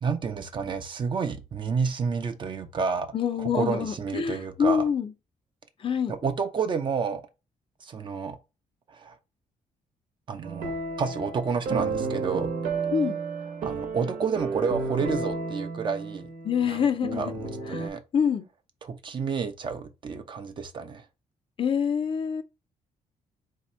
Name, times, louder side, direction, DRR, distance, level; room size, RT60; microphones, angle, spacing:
voice 1, 0.0-3.1 3.4-4.8 6.1-7.2 7.8-8.4 8.9-9.1 10.3-10.7 11.0-12.5 13.6-16.3 16.7-18.0 18.8-21.0, right 5 dB, 35° right, 0.6 m, -30 dB
voice 2, 3.1-5.1 5.8-6.2 12.9-13.2 16.4-17.3 17.7-18.5 21.6-22.4, left 7 dB, 40° left, 0.5 m, -26 dB
sound 1, 10.4-17.9, right 4 dB, 85° right, 1.1 m, -32 dB
4.0 x 2.8 x 4.3 m
cardioid pair, 145°, 14 cm